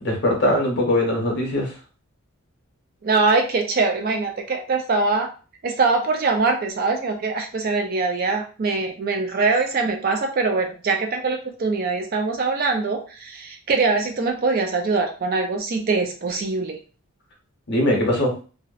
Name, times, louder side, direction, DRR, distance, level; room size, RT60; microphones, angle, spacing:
voice 1, 0.0-1.8 17.7-18.3, left 1 dB, 50° left, -1 dB, 0.8 m, -21 dB
voice 2, 3.0-5.3 5.6-16.8, right 3 dB, 40° right, 4 dB, 0.3 m, -23 dB
2.6 x 2.0 x 2.3 m, 0.36 s
head